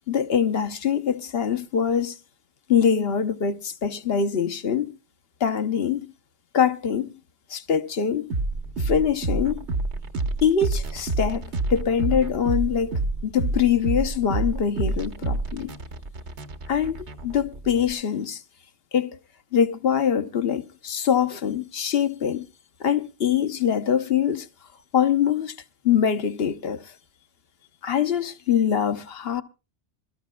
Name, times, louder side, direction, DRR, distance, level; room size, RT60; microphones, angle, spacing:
voice 1, 0.1-2.2 2.7-4.9 5.4-6.1 6.5-7.2 7.5-8.3 8.8-9.6 10.4-15.7 16.7-17.0 17.2-18.4 18.9-19.2 19.5-22.4 22.8-24.5 24.9-25.5 25.8-26.9 27.8-29.4, left 8 dB, 55° left, 1.0 m, -23 dB
sound 1, 8.3-17.9, right 2 dB, 65° right, 1.4 m, -28 dB
26.0 x 13.5 x 2.2 m
omnidirectional pair, 1.2 m